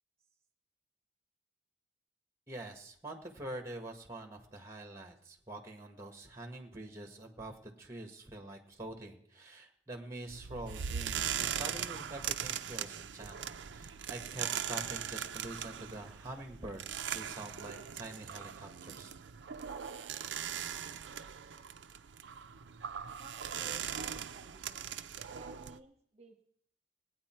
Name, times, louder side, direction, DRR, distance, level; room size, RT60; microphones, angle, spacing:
voice 1, 2.5-19.2, right 2 dB, 15° right, 4 dB, 1.6 m, -46 dB
sound 1, 10.3-25.8, right 9 dB, 75° right, 0.5 m, -40 dB
voice 2, 23.2-25.0 25.3-26.4, right 1 dB, 35° right, 6 dB, 1.2 m, -54 dB
19.5 x 9.4 x 4.5 m, 0.66 s
head